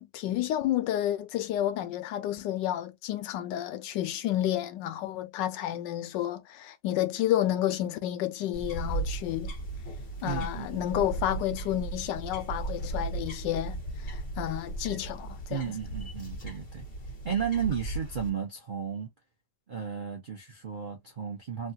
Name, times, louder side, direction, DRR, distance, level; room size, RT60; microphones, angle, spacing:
voice 1, 0.0-9.5 10.2-15.7, left 12 dB, 80° left, 1.2 m, -30 dB
sound 1, 8.5-18.3, right 2 dB, 35° left, 1.2 m, -36 dB
voice 2, 10.2-10.8 15.5-16.9 17.2-19.1 19.7-21.7, right 7 dB, 55° right, 0.5 m, -33 dB
3.3 x 2.3 x 2.7 m
omnidirectional pair, 1.9 m